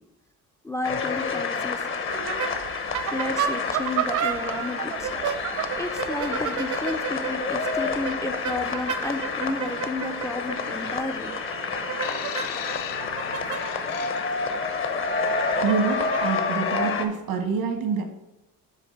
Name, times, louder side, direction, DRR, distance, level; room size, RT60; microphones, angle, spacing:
voice 1, 0.6-1.8 3.1-5.2 5.8-11.8, left 2 dB, 10° left, 6 dB, 0.5 m, -32 dB
sound 1, 0.8-17.0, left 4 dB, 35° left, 0.9 m, -29 dB
sound 2, 2.1-16.3, right 8 dB, 60° right, 0.9 m, -33 dB
sound 3, 12.0-14.6 15.5-15.7, left 11 dB, 75° left, 0.6 m, -37 dB
voice 2, 15.6-18.0, right 5 dB, 80° right, 5 dB, 1.6 m, -26 dB
6.7 x 3.9 x 6.3 m, 0.94 s
cardioid pair, 115°, 34 cm